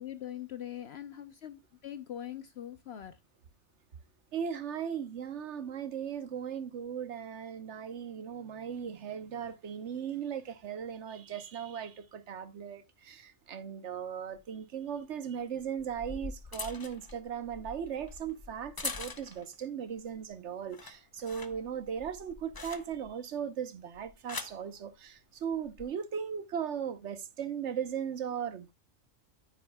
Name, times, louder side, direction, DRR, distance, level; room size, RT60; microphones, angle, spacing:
voice 1, 0.0-3.2, left 11 dB, 60° left, 0.9 m, -42 dB
voice 2, 4.3-28.7, right 8 dB, 65° right, 1.2 m, -38 dB
sound 1, 14.3-14.4 15.6-19.6 20.0-20.3 20.6-23.2 23.9-24.6 25.5-25.8, left 3 dB, 25° left, 0.5 m, -43 dB
9.2 x 9.0 x 2.2 m
omnidirectional pair, 1.3 m